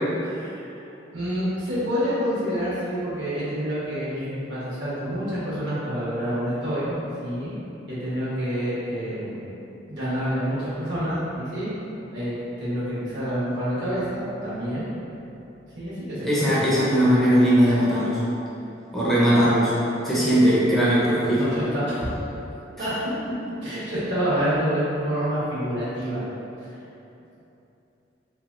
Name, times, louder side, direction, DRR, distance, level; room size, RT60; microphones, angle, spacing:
voice 1, 0.2-0.6 1.1-7.6 7.9-9.4 9.8-11.7 12.1-14.9 15.8-16.9 21.3-22.1 22.8-22.9 23.6-26.2, equal, 70° right, -10 dB, 1.3 m, -28 dB
voice 2, 16.2-18.2 18.9-19.7 20.0-21.4, equal, ahead, -9 dB, 0.5 m, -19 dB
3.3 x 3.1 x 2.5 m, 2.9 s
head